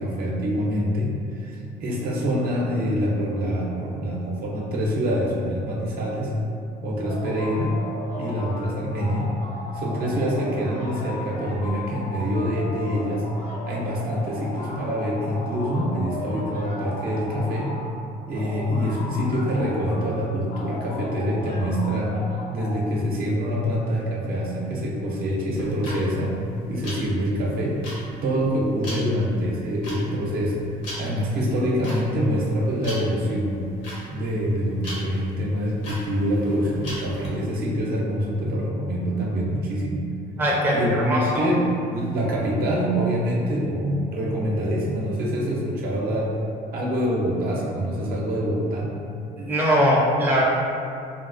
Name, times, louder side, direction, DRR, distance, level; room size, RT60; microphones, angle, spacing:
voice 1, 0.0-6.3 6.8-7.7 8.2-9.3 9.7-13.2 13.7-17.7 18.3-22.1 22.5-26.3 26.7-27.7 28.2-30.5 31.0-33.6 34.1-40.1 40.7-46.4 46.7-48.9, equal, 60° right, -4 dB, 0.7 m, -25 dB
sound 1, 7.0-8.7 9.0-17.9 18.3-20.1 20.5-22.8, left 2 dB, 50° left, 0.5 m, -36 dB
sound 2, 25.5-37.3, equal, 90° left, 1.1 m, -38 dB
voice 2, 40.4-40.8 41.0-41.5 49.4-50.4, equal, 10° right, -5 dB, 0.5 m, -20 dB
3.6 x 2.3 x 2.5 m, 2.6 s
cardioid pair, 110°, 17 cm